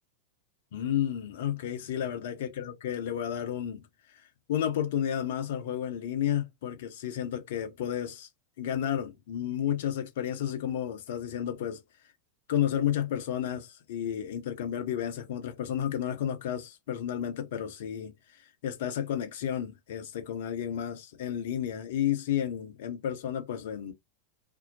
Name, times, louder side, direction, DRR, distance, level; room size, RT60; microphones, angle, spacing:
voice 1, 0.7-3.8 4.5-8.3 8.6-11.8 12.5-23.9, left 10 dB, 55° left, 0.6 m, -32 dB
2.6 x 2.1 x 2.7 m
figure-of-eight pair, 90°, 0 cm